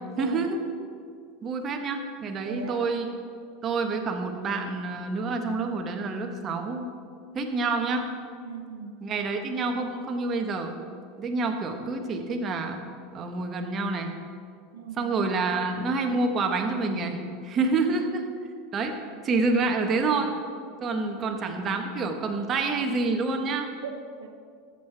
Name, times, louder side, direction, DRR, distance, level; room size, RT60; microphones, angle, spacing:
voice 1, 0.2-0.6 1.4-3.1 3.6-6.9 7.3-8.1 9.0-10.7 11.2-12.8 13.1-14.1 15.0-18.2 18.7-20.3 20.8-23.7, right 3 dB, 35° right, 4 dB, 1.3 m, -28 dB
voice 2, 2.4-2.9 8.4-9.0 14.7-15.2 17.7-18.1 20.9-21.4 23.8-24.3, right 6 dB, 85° right, 5 dB, 0.6 m, -39 dB
14.0 x 7.8 x 3.5 m, 2.2 s
hypercardioid pair, 90°, 0 cm